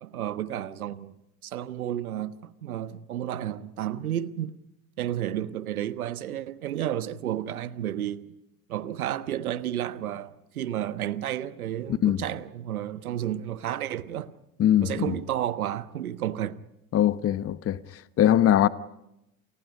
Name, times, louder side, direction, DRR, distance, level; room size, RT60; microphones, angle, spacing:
voice 1, 0.0-4.6 5.0-8.3 8.7-14.3 14.8-16.6, right 11 dB, 80° right, 1.3 m, -32 dB
voice 2, 14.6-15.1 16.9-17.8 18.2-18.7, left 11 dB, 30° left, 1.1 m, -21 dB
29.0 x 29.0 x 5.3 m
hypercardioid pair, 75°, 43 cm